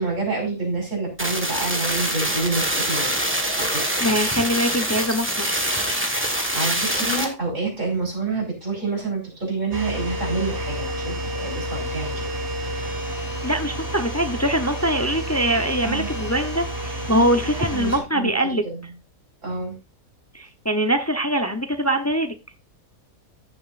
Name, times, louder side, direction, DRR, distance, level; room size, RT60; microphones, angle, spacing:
voice 1, 0.0-4.2 6.2-12.3 15.8-16.1 17.1-17.2 17.6-18.9 19.4-19.8, right 3 dB, 60° right, -1 dB, 5.1 m, -28 dB
sound 1, 1.2-7.2, right 1 dB, 10° right, 1.5 m, -24 dB
voice 2, 4.0-5.5 13.4-18.7 20.3-22.3, right 1 dB, 15° left, 7 dB, 0.6 m, -23 dB
sound 2, 9.7-18.0, equal, 40° right, 2.8 m, -30 dB
14.5 x 7.2 x 2.6 m, 0.27 s
omnidirectional pair, 1.5 m